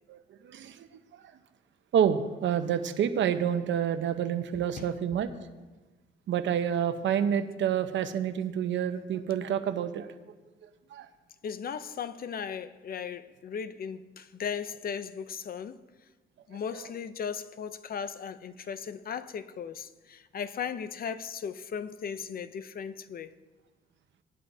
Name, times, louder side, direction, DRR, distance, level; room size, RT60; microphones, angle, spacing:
voice 1, 0.1-0.9 1.1-1.3 1.9-5.3 6.3-10.1 10.9-11.1, right 9 dB, 70° right, 0.9 m, -28 dB
voice 2, 11.4-15.8 16.5-23.3, left 7 dB, 50° left, 0.6 m, -37 dB
18.0 x 11.0 x 2.8 m
cardioid pair, 90°, 20 cm